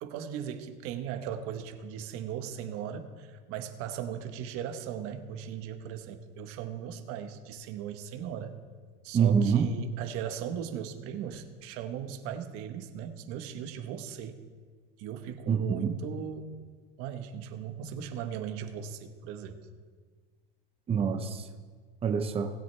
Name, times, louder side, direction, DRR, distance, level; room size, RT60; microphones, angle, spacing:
voice 1, 0.0-8.6 9.0-14.4 15.0-16.5 17.0-19.6, right 9 dB, 50° right, 7 dB, 1.2 m, -38 dB
voice 2, 9.1-9.7 15.5-15.9 20.9-21.5 22.0-22.5, right 6 dB, 20° right, 5 dB, 0.9 m, -25 dB
19.5 x 7.7 x 3.4 m, 1.5 s
supercardioid pair, 135°, 30 cm